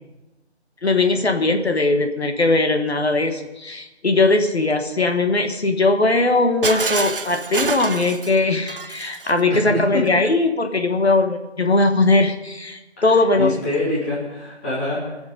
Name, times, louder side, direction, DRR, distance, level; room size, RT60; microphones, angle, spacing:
voice 1, 0.8-13.8, left 2 dB, 70° left, 5 dB, 1.4 m, -19 dB
Shatter, 6.6-9.4, right 4 dB, 55° right, 0.7 m, -27 dB
voice 2, 9.5-10.1 13.0-13.1 13.4-15.2, left 1 dB, 10° left, -7 dB, 1.8 m, -25 dB
20.5 x 7.1 x 5.2 m, 1.0 s
figure-of-eight pair, 165°, 33 cm